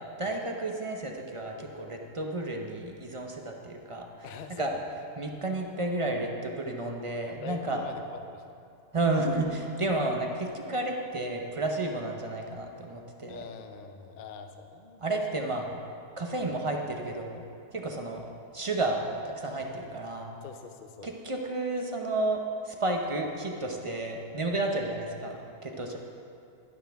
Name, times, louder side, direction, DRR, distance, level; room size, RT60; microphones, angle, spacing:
voice 1, 0.0-7.8 8.9-13.5 15.0-15.8 16.2-17.5 17.7-18.3 18.5-20.4 21.0-26.0, right 2 dB, 45° right, 2 dB, 0.4 m, -32 dB
voice 2, 4.2-4.9 7.2-8.6 13.3-15.2 16.3-16.5 20.4-21.1 24.7-25.0, left 5 dB, 55° left, 6 dB, 0.6 m, -44 dB
12.0 x 11.0 x 3.5 m, 2.5 s
omnidirectional pair, 1.6 m